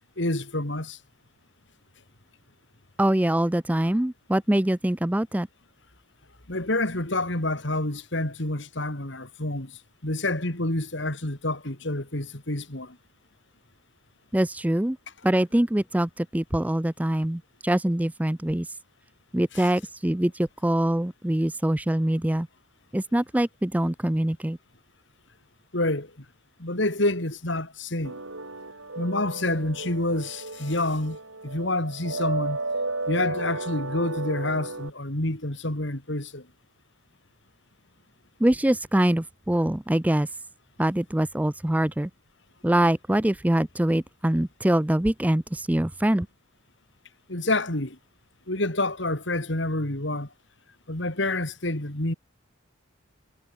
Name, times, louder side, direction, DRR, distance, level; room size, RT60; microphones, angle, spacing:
voice 1, 0.2-1.0 6.5-9.7 10.0-13.0 19.5-19.6 25.7-26.1 26.6-28.2 29.0-31.2 31.4-32.6 33.1-36.4 47.3-48.0 48.5-50.3 50.9-52.1, left 2 dB, 60° left, 3.1 m, -28 dB
voice 2, 3.0-5.5 14.3-15.0 15.2-18.7 19.3-22.5 22.9-24.6 38.4-40.3 40.8-42.1 42.6-46.3, right 1 dB, 5° right, 0.4 m, -24 dB
sound 1, 28.0-34.9, right 2 dB, 75° right, 5.9 m, -33 dB
head